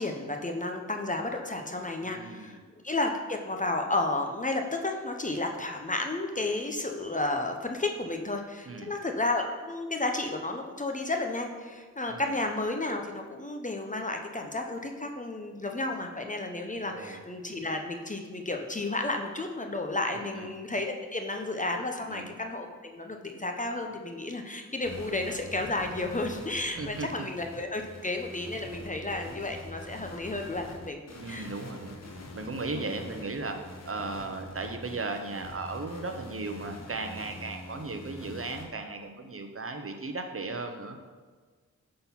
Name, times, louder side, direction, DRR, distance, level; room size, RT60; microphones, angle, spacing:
voice 1, 0.0-2.6 2.8-31.0 31.3-31.5 32.7-33.0, left 2 dB, 25° left, 3 dB, 0.7 m, -32 dB
voice 2, 2.0-2.6 8.7-8.9 12.1-12.3 16.8-17.2 20.1-20.5 22.1-22.3 26.8-27.3 31.2-32.0 32.3-33.6 33.9-41.0, right 3 dB, 45° right, 5 dB, 0.7 m, -36 dB
sound 1, 24.8-38.7, left 1 dB, 55° left, 1.0 m, -45 dB
5.7 x 3.8 x 5.7 m, 1.5 s
cardioid pair, 45°, 32 cm